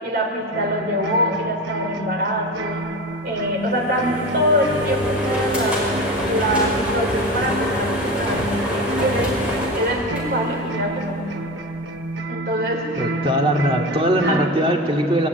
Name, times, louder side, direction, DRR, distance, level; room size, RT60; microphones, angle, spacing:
voice 1, 0.0-2.8 3.2-6.0 6.3-11.2 12.3-13.0 13.9-14.5, equal, 55° right, 2 dB, 4.0 m, -24 dB
sound 1, 0.5-14.6, right 2 dB, 90° right, 1.0 m, -31 dB
sound 2, 3.6-10.9, equal, 5° right, 5.5 m, -25 dB
voice 2, 13.0-15.3, equal, 30° right, 0 dB, 2.5 m, -20 dB
25.0 x 21.0 x 9.6 m, 2.9 s
head